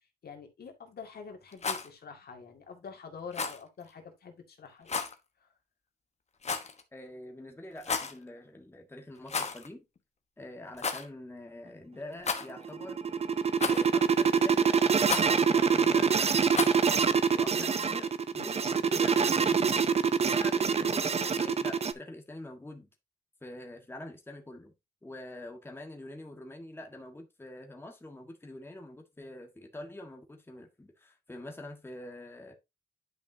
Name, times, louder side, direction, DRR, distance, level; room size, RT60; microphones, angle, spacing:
voice 1, 0.2-5.0 5.4-5.5, left 5 dB, 80° left, 2.1 m, -46 dB
Rattle, 1.5-1.9 3.3-3.6 4.9-5.1 6.4-6.8 7.8-8.2 9.3-9.7 10.0-10.1 10.8-11.1 12.2-12.7 13.6-14.0 15.0-15.3 16.5-16.9, left 5 dB, 45° left, 1.2 m, -32 dB
voice 2, 6.9-9.8 10.4-13.0 13.6-16.9 17.3-19.9 20.2-22.9 23.4-24.7 25.0-32.5, left 1 dB, 15° left, 1.6 m, -45 dB
sound 1, 12.5-21.9, right 6 dB, 40° right, 0.6 m, -25 dB
10.5 x 5.5 x 2.8 m
wide cardioid pair, 135°, 16 cm